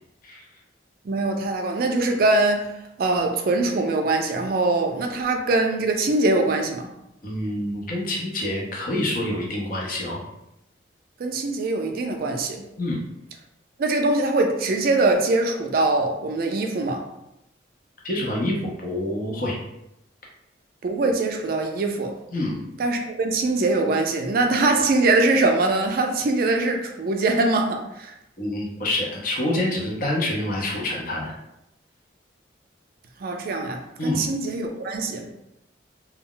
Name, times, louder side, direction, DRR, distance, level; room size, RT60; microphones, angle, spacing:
voice 1, 1.0-2.7 3.0-6.9 11.2-12.6 13.8-17.1 20.8-22.2 22.8-28.1 33.2-35.3, right 2 dB, 50° right, 4 dB, 0.3 m, -22 dB
voice 2, 7.2-10.2 12.8-13.0 18.0-19.6 22.3-22.6 28.4-31.3 34.0-34.3, left 1 dB, 45° left, -3 dB, 0.7 m, -27 dB
2.3 x 2.0 x 3.7 m, 0.84 s
head